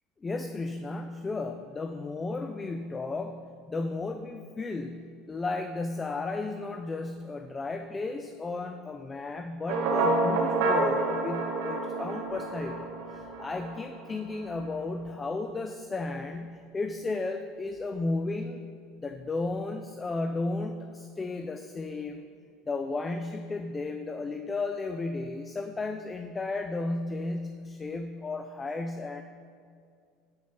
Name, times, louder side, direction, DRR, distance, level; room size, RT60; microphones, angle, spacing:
voice 1, 0.2-18.6 19.0-22.3 22.7-29.2, left 3 dB, 25° left, 7 dB, 0.4 m, -34 dB
sound 1, 9.7-13.9, right 2 dB, 70° right, 1.1 m, -28 dB
8.1 x 6.1 x 3.9 m, 2.3 s
hypercardioid pair, 80°, 0 cm